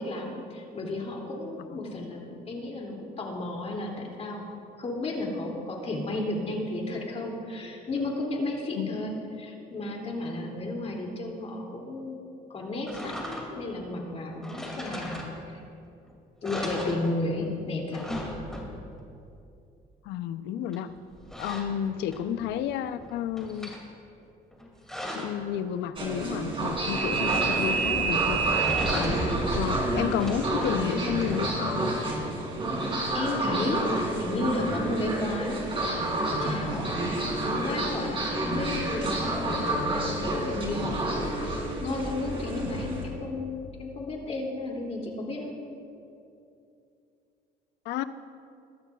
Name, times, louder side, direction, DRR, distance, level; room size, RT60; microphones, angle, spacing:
voice 1, 0.0-9.1 9.4-12.2 12.5-15.6 16.4-18.0 33.1-33.8 34.2-35.7 36.4-36.9 37.4-45.5, left 2 dB, 40° left, -1 dB, 2.6 m, -33 dB
sound 1, 12.9-13.7 14.4-15.7 16.0-16.1 16.4-17.5 17.8-19.0 20.7-22.5 22.9-23.8 24.5-25.5 27.2-28.0 28.5-29.5 30.0-31.8, equal, 5° left, 2.4 m, -38 dB
voice 2, 20.0-20.9 21.4-23.8 25.1-29.2 29.5-31.9 47.9-48.0, left 10 dB, 85° left, 12 dB, 0.6 m, -31 dB
sound 2, 26.0-43.0, right 2 dB, 30° right, 3.0 m, -29 dB
22.0 x 12.5 x 2.4 m, 2.6 s
cardioid pair, 110°, 17 cm